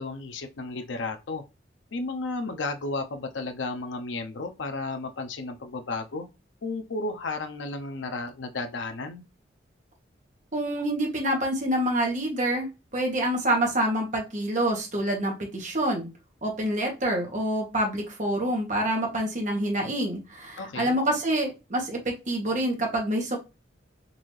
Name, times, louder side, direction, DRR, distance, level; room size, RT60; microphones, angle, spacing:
voice 1, 0.0-1.4 1.9-6.3 6.6-9.2 20.6-20.9, left 3 dB, 75° left, 0.6 m, -33 dB
voice 2, 10.5-16.1 16.4-23.4, right 1 dB, 40° right, 1.2 m, -27 dB
3.9 x 2.7 x 3.1 m
head